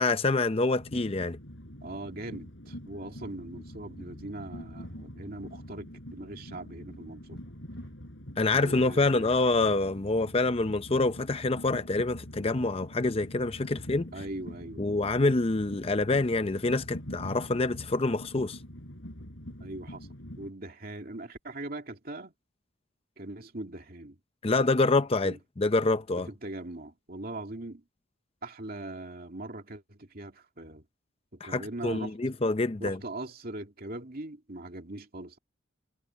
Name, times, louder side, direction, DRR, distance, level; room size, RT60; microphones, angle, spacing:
voice 1, 0.0-1.4 8.4-14.1 14.8-18.6 24.4-26.3 31.4-33.0, left 3 dB, 30° left, 0.6 m, -26 dB
Train, 0.8-20.5, equal, 65° left, 7.9 m, -44 dB
voice 2, 1.8-7.4 8.5-9.3 14.1-14.9 19.6-20.1 20.4-22.3 23.2-24.2 25.2-25.4 26.1-27.8 28.4-30.8 31.3-32.2 32.8-35.4, right 2 dB, 45° right, 2.6 m, -41 dB
head